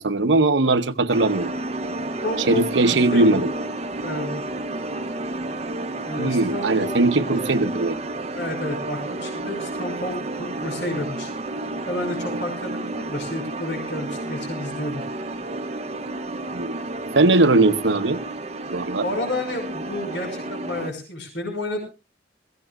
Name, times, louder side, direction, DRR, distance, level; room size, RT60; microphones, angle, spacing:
voice 1, 0.0-1.5 2.5-3.5 6.2-8.0 16.5-16.8 17.2-18.2 18.7-19.0, right 2 dB, 75° right, 0.9 m, -19 dB
sound 1, 1.1-20.9, right 2 dB, 35° right, 0.7 m, -31 dB
voice 2, 2.2-3.4 4.0-4.4 6.1-6.9 7.3-7.4 8.3-11.3 11.9-15.0 19.0-21.8, left 1 dB, 80° left, 5.7 m, -30 dB
21.5 x 16.0 x 2.4 m
head